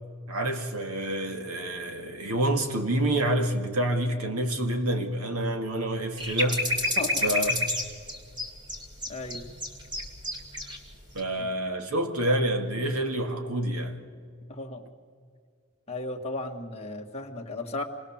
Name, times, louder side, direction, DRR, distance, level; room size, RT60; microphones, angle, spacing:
voice 1, 0.3-6.7 7.2-7.6 11.1-14.0, right 1 dB, 80° right, 2.1 m, -28 dB
sound 1, 6.2-10.8 11.1-11.2, left 1 dB, 20° right, 2.5 m, -29 dB
voice 2, 9.1-9.4 11.4-11.5 14.5-14.9 15.9-17.8, left 2 dB, 30° left, 1.8 m, -35 dB
27.0 x 20.0 x 7.3 m
head